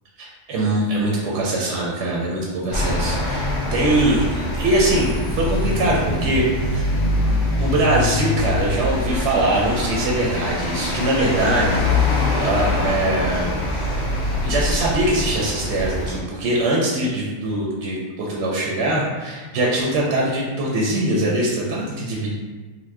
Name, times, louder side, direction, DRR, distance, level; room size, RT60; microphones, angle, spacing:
voice 1, 0.2-6.9 7.6-11.9 12.4-14.2 14.4-22.3, right 1 dB, 65° right, -4 dB, 0.8 m, -22 dB
sound 1, 2.7-16.2, left 2 dB, 65° left, 0.8 m, -23 dB
2.9 x 2.1 x 3.2 m, 1.3 s
omnidirectional pair, 1.4 m